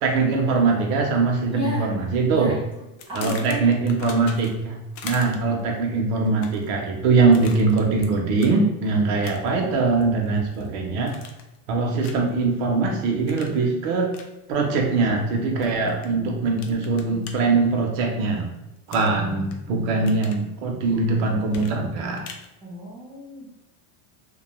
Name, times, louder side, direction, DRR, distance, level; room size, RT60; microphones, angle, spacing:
voice 1, 0.0-2.5 3.1-4.8 5.0-11.2 11.7-14.1 14.5-18.5 18.9-22.2, right 3 dB, 50° right, 1 dB, 0.7 m, -22 dB
voice 2, 1.5-1.9 2.3-2.6 3.1-3.7 22.6-23.4, equal, 10° right, -7 dB, 0.5 m, -33 dB
sound 1, 3.0-4.7 5.0-5.6 6.3-6.7 7.3-8.1 8.4-8.6 9.2-9.6 10.0-10.7 11.1-11.6 12.0-12.3 13.3-13.6 14.1-14.3 15.6-16.1 16.6-17.3 18.9-19.6 19.9-20.4 21.5-22.5, left 6 dB, 60° left, 0.5 m, -40 dB
2.3 x 2.2 x 2.9 m, 0.96 s
supercardioid pair, 155°, 44 cm